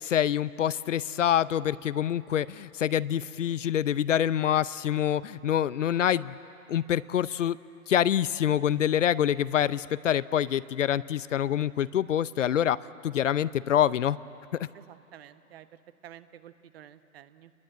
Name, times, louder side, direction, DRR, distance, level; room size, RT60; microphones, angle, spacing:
voice 1, 0.0-6.4 6.7-7.6 7.9-12.8 13.0-14.2, left 10 dB, 55° left, 17 dB, 0.6 m, -26 dB
voice 2, 14.7-15.7 16.0-17.5, right 11 dB, 40° right, 13 dB, 1.1 m, -50 dB
29.0 x 21.5 x 8.9 m, 2.9 s
figure-of-eight pair, 130°, 45 cm